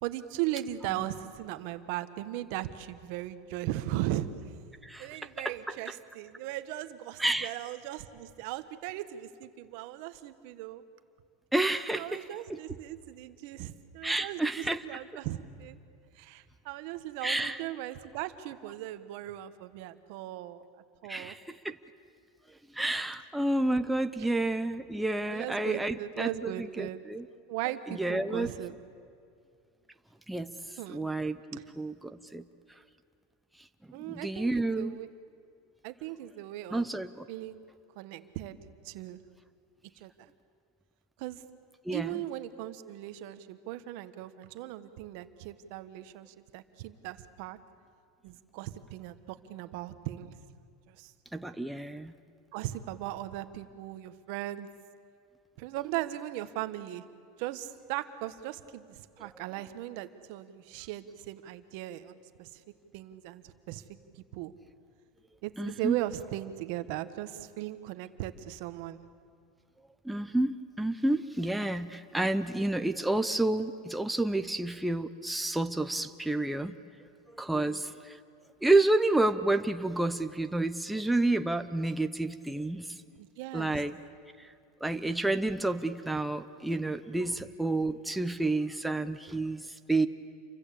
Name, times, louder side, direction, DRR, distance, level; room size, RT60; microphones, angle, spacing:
voice 1, 0.0-4.3 5.0-10.8 11.9-15.8 16.1-20.6 21.0-21.3 24.2-24.4 25.3-27.0 27.5-28.8 30.8-31.1 33.9-35.1 35.8-36.9 37.3-37.6 37.9-38.6 38.8-39.2 40.0-40.3 41.2-41.4 41.9-47.6 48.2-50.3 50.9-51.1 52.5-54.7 55.6-57.0 57.4-62.6 62.9-63.8 64.1-64.5 65.4-69.0 77.4-77.8 83.2-83.8 87.2-87.4, right 14 dB, 50° right, 11 dB, 1.2 m, -38 dB
voice 2, 7.2-7.5 11.5-12.2 12.5-12.6 14.0-14.8 17.2-17.6 21.1-21.8 22.7-27.3 27.9-28.5 30.3-30.5 30.9-32.4 34.1-35.0 36.7-37.3 41.8-42.2 51.3-52.1 65.6-66.0 70.0-76.7 77.3-78.2 78.6-82.9 83.5-84.0 84.4-84.5 84.8-90.1, right 2 dB, 5° right, 8 dB, 0.6 m, -30 dB
28.5 x 24.0 x 8.4 m, 2.4 s
supercardioid pair, 175°, 0 cm